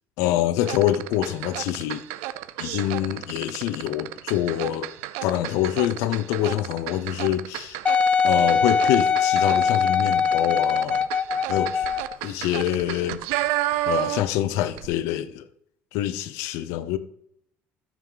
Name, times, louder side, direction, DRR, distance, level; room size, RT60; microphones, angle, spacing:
voice 1, 0.2-2.0 2.6-4.9 5.2-7.8 8.2-11.1 11.5-11.9 12.2-13.5 13.9-15.5 15.9-17.0, left 12 dB, 75° left, 0.7 m, -25 dB
sound 1, 0.6-14.4 14.7-14.9, right 16 dB, 85° right, 0.6 m, -31 dB
Wind instrument woodwind instrument, 7.9-12.2 12.8-12.9, left 6 dB, 25° left, 0.4 m, -21 dB
14.0 x 6.0 x 4.0 m
cardioid pair, 125°, 5 cm